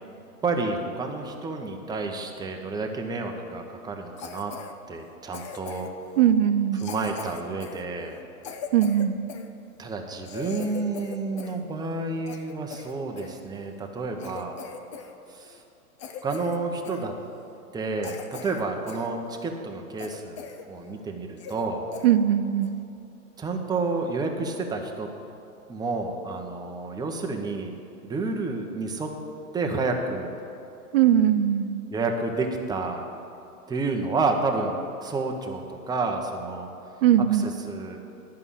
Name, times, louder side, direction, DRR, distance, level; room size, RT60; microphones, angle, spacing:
voice 1, 0.4-4.5 4.9-5.9 6.8-8.2 9.8-14.6 15.3-15.6 16.2-17.1 17.7-21.8 23.4-25.1 25.7-27.7 28.0-29.1 29.5-30.3 31.9-33.1 33.7-34.8 35.0-36.7 37.3-38.0, right 3 dB, 10° right, 2 dB, 0.8 m, -30 dB
Cough, 4.2-4.7 5.3-6.0 6.8-9.5 9.9-10.0 10.2-11.6 11.9-13.4 13.8-13.9 14.2-15.1 15.4-15.6 16.0-16.6 16.8-17.1 17.6-17.7 18.0-19.1 19.5-19.6 20.0-20.7 21.0-21.1 21.4-21.7 21.9-22.1 22.6-22.8, left 6 dB, 25° left, 0.3 m, -40 dB
voice 2, 6.2-6.9 8.7-9.2 22.0-22.7 30.9-31.7 37.0-37.5, right 10 dB, 40° right, 12 dB, 0.4 m, -20 dB
11.0 x 5.7 x 8.7 m, 2.7 s
hypercardioid pair, 110°, 45 cm